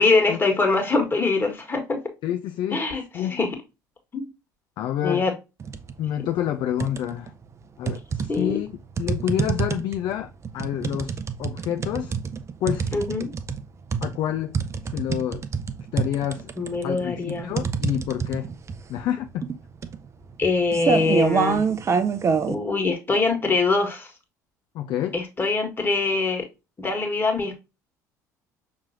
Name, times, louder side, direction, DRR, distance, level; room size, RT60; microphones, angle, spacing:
voice 1, 0.0-2.0 2.7-3.5 4.1-4.3 5.0-5.3 8.3-8.6 12.9-13.3 16.6-17.5 20.4-21.7 22.5-24.1 25.1-26.5 26.8-27.6, left 3 dB, 20° left, 1.7 m, -23 dB
voice 2, 2.2-2.8 3.1-3.4 4.8-5.3 6.0-7.3 7.8-12.1 12.6-12.9 14.0-14.6 14.9-15.4 15.9-16.5 16.8-18.5 18.9-19.4 24.7-25.2, left 11 dB, 50° left, 0.4 m, -28 dB
sound 1, 5.6-6.0 6.4-7.3 7.9-22.5, right 6 dB, 30° right, 0.6 m, -26 dB
5.9 x 3.0 x 2.7 m
figure-of-eight pair, 60°, 10 cm